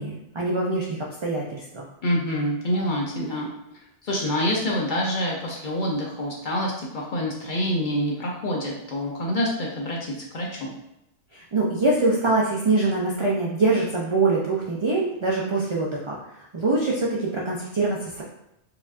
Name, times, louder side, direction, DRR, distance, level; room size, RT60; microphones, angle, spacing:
voice 1, 0.0-1.8 11.3-16.2 16.5-18.2, right 3 dB, 50° right, -4 dB, 0.3 m, -24 dB
voice 2, 2.0-3.5 4.0-10.7, equal, 50° left, -2 dB, 0.7 m, -26 dB
4.6 x 2.4 x 2.4 m, 0.84 s
omnidirectional pair, 1.2 m